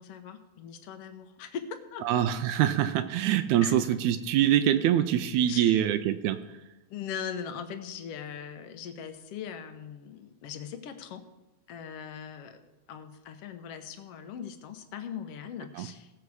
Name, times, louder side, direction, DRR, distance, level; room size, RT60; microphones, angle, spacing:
voice 1, 0.0-2.3 3.6-3.7 5.5-5.8 6.9-11.2 11.7-12.6 12.9-16.1, left 7 dB, 65° left, 8 dB, 1.7 m, -40 dB
voice 2, 2.0-6.6 15.8-15.9, right 11 dB, 80° right, 9 dB, 1.9 m, -25 dB
17.5 x 6.9 x 4.7 m, 1.0 s
omnidirectional pair, 3.4 m